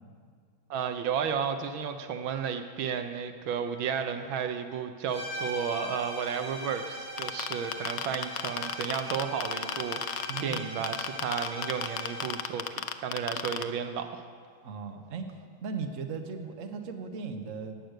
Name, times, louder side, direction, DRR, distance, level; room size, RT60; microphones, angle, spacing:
voice 1, 0.7-14.2, right 7 dB, 75° right, 8 dB, 1.5 m, -33 dB
sound 1, 5.1-12.5, equal, 25° right, 4.0 m, -40 dB
sound 2, 7.2-10.6 10.8-13.6, left 10 dB, 70° left, 0.8 m, -31 dB
voice 2, 10.3-10.6 13.3-13.5 14.6-17.8, right 5 dB, 45° right, 5 dB, 1.2 m, -37 dB
19.5 x 7.7 x 6.6 m, 2.1 s
omnidirectional pair, 2.2 m